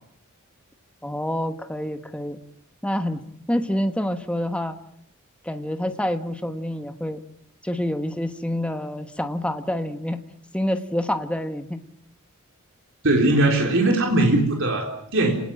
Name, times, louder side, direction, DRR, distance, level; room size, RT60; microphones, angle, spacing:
voice 1, 1.0-2.4 2.8-3.2 3.5-4.8 5.4-7.2 7.6-10.2 10.5-11.8, left 1 dB, 5° left, 7 dB, 1.3 m, -27 dB
voice 2, 13.0-15.3, right 2 dB, 60° right, 1 dB, 4.0 m, -20 dB
30.0 x 19.0 x 7.7 m, 0.71 s
head